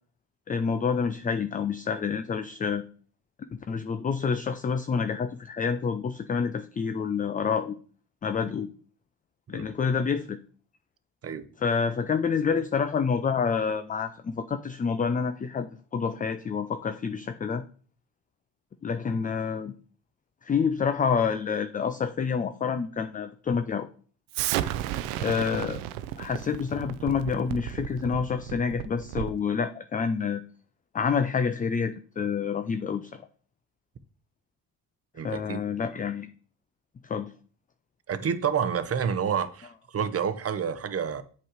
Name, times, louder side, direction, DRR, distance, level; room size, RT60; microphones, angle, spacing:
voice 1, 0.5-2.8 3.7-7.8 8.2-8.7 9.5-10.4 11.6-17.6 18.8-19.7 20.4-23.9 25.2-25.8 26.2-30.4 30.9-33.2 35.2-36.3 37.0-37.3, left 6 dB, 20° left, 0.4 m, -28 dB
Explosion, 24.3-29.5, right 12 dB, 85° right, 0.6 m, -33 dB
voice 2, 35.1-35.6 38.1-41.2, right 7 dB, 30° right, 0.8 m, -29 dB
7.6 x 3.2 x 5.0 m
supercardioid pair, 65°, 48 cm